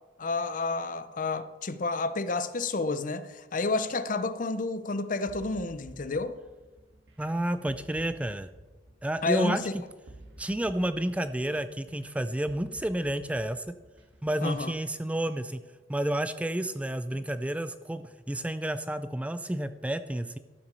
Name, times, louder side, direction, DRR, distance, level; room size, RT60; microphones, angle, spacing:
voice 1, 0.2-6.4 9.2-9.7 14.4-14.7, left 3 dB, 50° left, 0.7 m, -30 dB
sound 1, 5.3-14.8, right 1 dB, 80° right, 1.6 m, -52 dB
voice 2, 7.2-8.5 9.0-9.6 10.4-13.7 14.2-15.6 15.9-20.4, right 1 dB, 10° right, 0.4 m, -30 dB
13.0 x 5.9 x 6.8 m
head